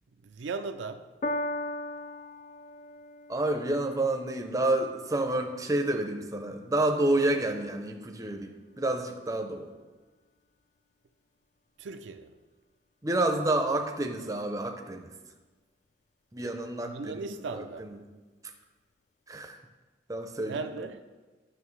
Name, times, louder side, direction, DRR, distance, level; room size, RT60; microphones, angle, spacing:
voice 1, 0.2-1.0 11.8-12.3 16.8-17.9 20.5-21.0, right 4 dB, 70° right, 8 dB, 0.4 m, -37 dB
Piano, 1.2-7.8 8.6-8.7, left 1 dB, 35° left, 0.3 m, -40 dB
voice 2, 3.3-9.7 13.0-15.1 16.3-17.9 19.3-19.6 20.1-20.6, right 2 dB, 20° right, 4 dB, 0.6 m, -29 dB
11.0 x 6.3 x 3.2 m, 1.3 s
head